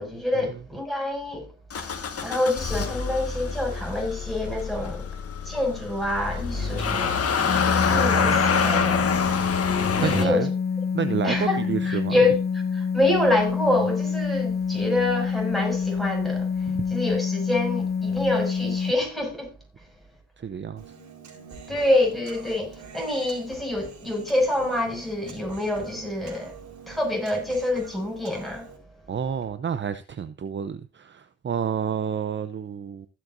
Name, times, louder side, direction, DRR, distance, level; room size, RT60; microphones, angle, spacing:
voice 1, 0.0-1.5 1.8-1.9 2.2-5.0 5.4-7.4 7.9-9.1 10.0-10.5 11.2-16.5 16.9-19.5 21.7-26.5 26.9-28.7, left 1 dB, ahead, 6.3 m, -26 dB
Motor vehicle (road) / Engine starting, 1.7-10.3, left 5 dB, 50° left, 1.7 m, -26 dB
sound 1, 7.5-18.9, left 6 dB, 35° left, 0.5 m, -27 dB
voice 2, 7.9-8.4 10.0-10.5 10.9-12.1 20.4-20.8 29.1-33.1, right 7 dB, 40° right, 0.7 m, -29 dB
Human voice, 20.8-28.8, right 5 dB, 70° right, 4.7 m, -45 dB
16.0 x 7.8 x 2.6 m
cardioid pair, 90°, 30 cm